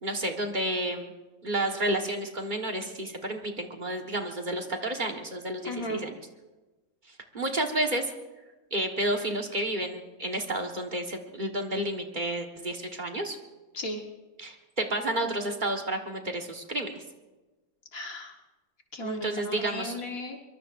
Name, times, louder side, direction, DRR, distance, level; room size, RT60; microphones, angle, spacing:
voice 1, 0.0-1.1 1.4-6.2 7.1-8.1 8.7-13.4 14.4-17.0 19.0-20.0, right 1 dB, 35° right, 3 dB, 1.5 m, -31 dB
voice 2, 5.6-6.0 13.7-14.0 17.9-18.4 18.9-20.4, left 1 dB, 70° left, 2 dB, 1.9 m, -35 dB
24.0 x 23.0 x 2.5 m, 1.2 s
omnidirectional pair, 1.5 m